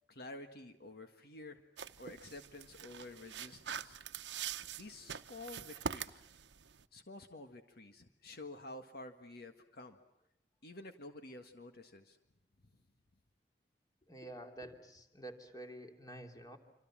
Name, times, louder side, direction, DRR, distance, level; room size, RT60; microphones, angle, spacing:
voice 1, 0.1-1.6 2.0-4.0 4.7-6.2 6.9-10.0 10.6-12.2, left 2 dB, 60° left, 7 dB, 1.8 m, -50 dB
sound 1, 1.8-6.8, right 7 dB, 85° right, 1.0 m, -44 dB
voice 2, 14.1-16.6, right 1 dB, 20° left, 4 dB, 3.1 m, -49 dB
27.5 x 26.5 x 7.5 m, 0.85 s
head